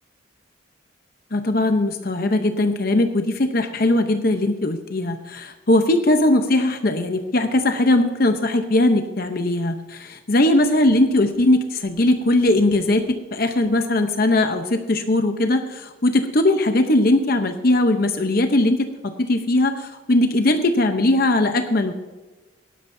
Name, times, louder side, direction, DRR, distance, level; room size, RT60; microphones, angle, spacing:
voice 1, 1.3-13.0 13.3-18.8 19.2-21.9, left 1 dB, 45° left, 6 dB, 0.8 m, -19 dB
18.5 x 12.0 x 2.7 m, 1.2 s
head